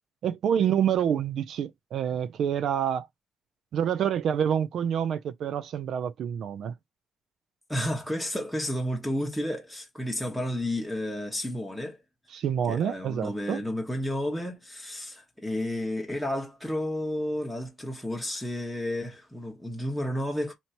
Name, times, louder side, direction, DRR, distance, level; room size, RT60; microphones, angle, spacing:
voice 1, 0.2-3.1 3.7-6.7 12.3-13.6, right 8 dB, 70° right, 0.4 m, -27 dB
voice 2, 7.7-12.0 12.7-20.5, left 1 dB, ahead, 1.1 m, -31 dB
2.9 x 2.8 x 4.4 m
cardioid pair, 90°, 0 cm